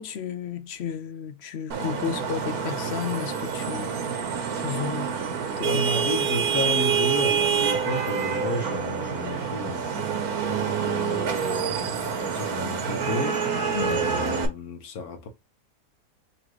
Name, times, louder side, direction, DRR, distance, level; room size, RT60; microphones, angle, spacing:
voice 1, 0.0-4.0 4.6-5.1 5.6-5.8 13.7-14.0, left 7 dB, 60° left, 0.7 m, -32 dB
Vehicle horn car horn honking / Traffic noise roadway noise, 1.7-14.5, right 7 dB, 90° right, 1.5 m, -27 dB
voice 2, 5.6-15.3, left 2 dB, 80° left, 1.5 m, -33 dB
4.2 x 2.9 x 3.0 m
omnidirectional pair, 1.5 m